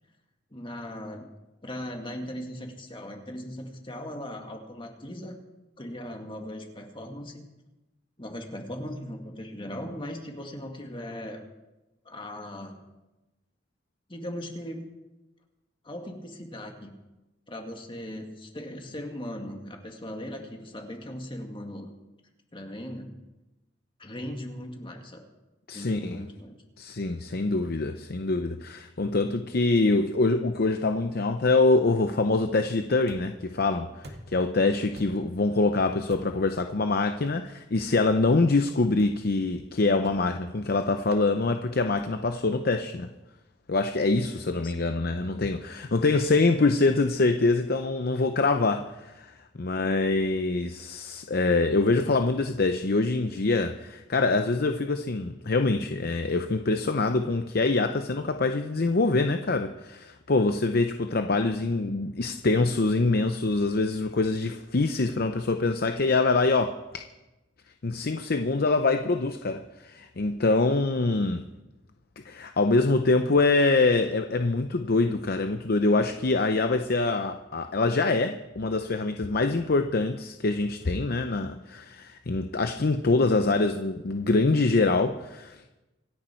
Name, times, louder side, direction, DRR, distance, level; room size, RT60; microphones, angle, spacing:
voice 1, 0.5-1.3 1.6-5.4 5.8-7.5 8.2-11.4 12.1-12.8 14.1-14.9 15.8-16.9 17.5-21.9 22.5-23.1 24.0-25.2 25.7-26.6 44.6-44.7, left 1 dB, 25° left, 3 dB, 2.0 m, -38 dB
voice 2, 25.7-26.2 26.8-33.9 34.3-43.1 43.7-67.0 67.8-71.4 72.2-85.7, left 3 dB, 55° left, 7 dB, 0.7 m, -25 dB
sound 1, 33.1-33.5 34.0-34.5 34.9-35.4 36.1-36.5 37.3-37.5 39.0-39.3 40.0-40.4 41.1-41.3 42.0-42.3, right 1 dB, 60° right, 2.2 m, -46 dB
26.0 x 10.5 x 4.5 m, 1.0 s
head